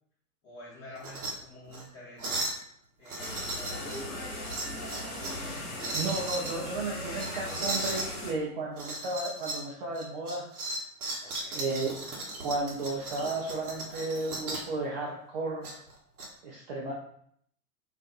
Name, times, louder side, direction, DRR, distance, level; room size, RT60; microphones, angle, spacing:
voice 1, 0.4-2.5 3.0-4.9 11.2-11.7, left 1 dB, 30° left, -8 dB, 0.9 m, -49 dB
sound 1, 0.9-1.3 1.7-1.8 2.2-2.6 3.0-4.0 4.4-5.4 5.8-6.5 7.1-8.1 8.7-9.6 9.9-14.7 15.6-16.3, right 2 dB, 70° right, 0.8 m, -36 dB
sound 2, 3.2-8.3, left 1 dB, 70° left, 1.1 m, -38 dB
voice 2, 5.9-10.5 11.5-12.0 12.4-15.7 16.4-16.9, right 2 dB, 35° right, -4 dB, 0.4 m, -33 dB
2.4 x 2.4 x 2.4 m, 0.67 s
figure-of-eight pair, 100°, 46 cm